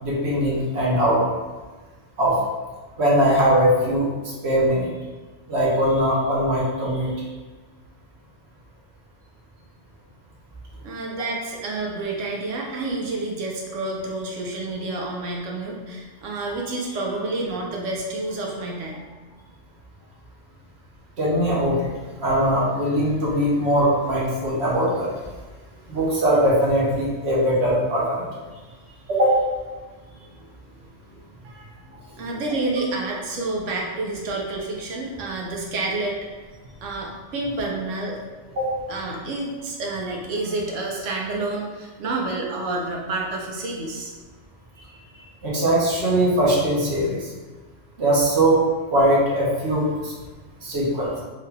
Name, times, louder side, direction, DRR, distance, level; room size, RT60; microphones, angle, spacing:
voice 1, 0.0-1.2 2.2-2.4 3.0-4.1 4.4-4.9 5.5-7.1 21.2-21.9 22.2-25.1 25.9-28.2 29.1-29.3 38.6-38.7 45.4-47.3 48.0-48.6 48.9-50.1 50.6-51.1, right 1 dB, 65° right, -5 dB, 1.1 m, -20 dB
voice 2, 10.8-19.0 31.4-31.7 32.2-36.2 36.8-38.2 38.9-44.1, right 2 dB, 85° right, -1 dB, 1.0 m, -29 dB
3.6 x 2.2 x 3.3 m, 1.3 s
omnidirectional pair, 1.2 m